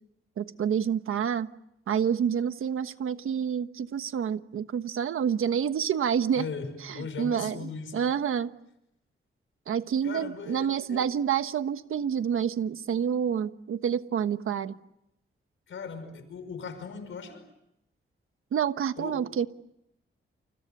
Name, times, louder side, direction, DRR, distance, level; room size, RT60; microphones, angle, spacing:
voice 1, 0.4-1.5 1.9-6.4 6.9-8.5 9.7-14.8 18.5-19.5, right 8 dB, 85° right, 1.3 m, -28 dB
voice 2, 6.4-8.1 10.0-11.1 15.7-17.5 19.0-19.3, left 5 dB, 70° left, 5.6 m, -38 dB
30.0 x 29.0 x 6.8 m
wide cardioid pair, 180°, 21 cm